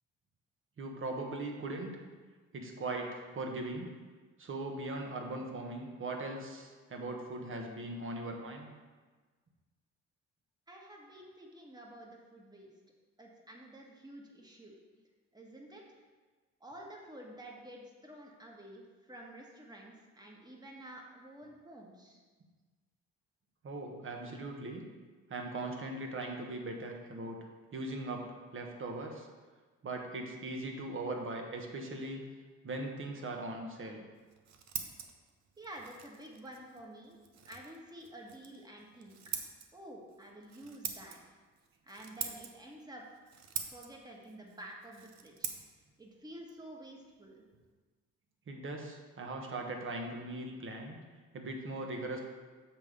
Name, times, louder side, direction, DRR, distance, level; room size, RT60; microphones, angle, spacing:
voice 1, 0.8-2.0 2.5-3.9 4.4-8.7 23.6-24.8 25.3-27.4 27.7-28.2 28.5-29.3 29.8-32.2 32.6-34.0 48.5-51.0 51.3-52.2, right 2 dB, 45° right, 2 dB, 1.4 m, -39 dB
voice 2, 10.7-12.7 13.2-14.7 15.3-16.0 16.6-22.2 35.6-37.2 37.5-39.2 39.7-41.2 41.8-43.0 43.7-45.5 46.0-47.4, right 1 dB, 15° right, -1 dB, 1.5 m, -50 dB
Scissors, 34.1-47.7, right 7 dB, 60° right, 0.8 m, -46 dB
7.4 x 3.6 x 6.5 m, 1.4 s
cardioid pair, 90°, 30 cm